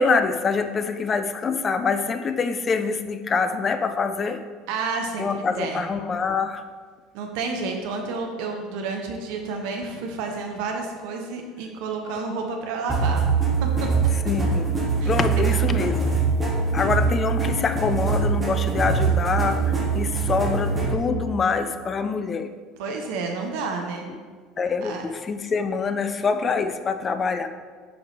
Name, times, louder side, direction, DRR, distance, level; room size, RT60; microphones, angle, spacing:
voice 1, 0.0-4.4 5.2-6.6 14.2-16.1 16.7-22.5 24.6-27.5, left 4 dB, 30° left, 9 dB, 0.5 m, -25 dB
voice 2, 4.7-5.8 7.1-13.2 15.0-15.1 22.8-24.1 24.8-25.0, right 4 dB, 60° right, 2 dB, 0.8 m, -30 dB
sound 1, 12.9-20.9, right 5 dB, 20° right, 2.0 m, -23 dB
7.9 x 4.8 x 3.3 m, 1.5 s
figure-of-eight pair, 65°, 0 cm